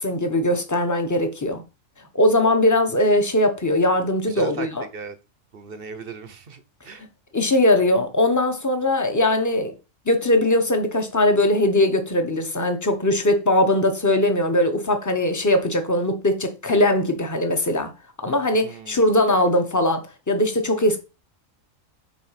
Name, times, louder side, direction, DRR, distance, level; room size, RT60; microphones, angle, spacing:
voice 1, 0.0-1.6 2.1-4.8 7.3-9.7 10.1-17.9 18.2-21.0, left 1 dB, 15° left, 1.0 m, -20 dB
voice 2, 4.3-5.2 5.5-7.1 18.5-19.0, right 5 dB, 50° right, 0.9 m, -36 dB
6.2 x 4.1 x 5.8 m
omnidirectional pair, 1.4 m